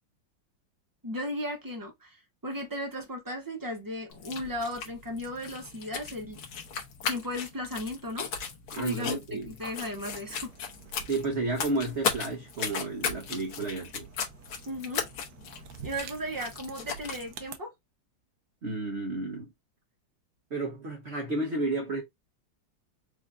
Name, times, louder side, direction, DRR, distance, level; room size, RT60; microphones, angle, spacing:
voice 1, 1.0-6.4 7.1-8.3 8.8-10.5 14.7-15.0 15.8-17.7, left 1 dB, 30° right, 0.3 m, -36 dB
sound 1, 4.1-17.3, left 6 dB, 85° left, 2.0 m, -37 dB
voice 2, 8.7-9.5 11.1-14.1 18.6-19.5 20.5-22.0, right 2 dB, 45° right, 0.9 m, -32 dB
sound 2, 9.8-17.6, right 7 dB, 65° right, 1.1 m, -50 dB
4.8 x 2.6 x 3.5 m
omnidirectional pair, 2.3 m